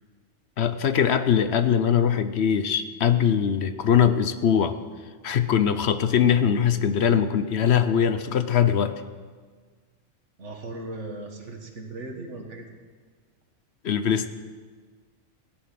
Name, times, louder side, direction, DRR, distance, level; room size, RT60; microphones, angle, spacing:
voice 1, 0.6-4.7 5.2-8.9 13.8-14.3, left 8 dB, 65° left, 10 dB, 0.9 m, -21 dB
voice 2, 10.4-12.7, right 2 dB, 70° right, 3 dB, 2.0 m, -37 dB
16.5 x 10.5 x 6.0 m, 1.5 s
omnidirectional pair, 1.3 m